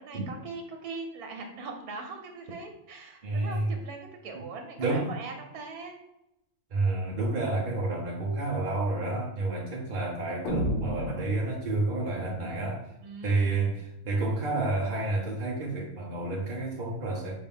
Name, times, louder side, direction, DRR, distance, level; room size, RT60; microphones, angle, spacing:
voice 1, 0.0-6.0 13.0-13.8, right 3 dB, 90° right, 3 dB, 1.4 m, -41 dB
voice 2, 3.2-3.7 4.3-4.4 4.8-5.1 6.7-12.9 13.2-17.4, right 2 dB, 45° right, -2 dB, 0.7 m, -30 dB
sound 1, 10.4-12.1, equal, 85° left, 1.3 m, -31 dB
5.4 x 2.8 x 3.5 m, 0.84 s
omnidirectional pair, 1.6 m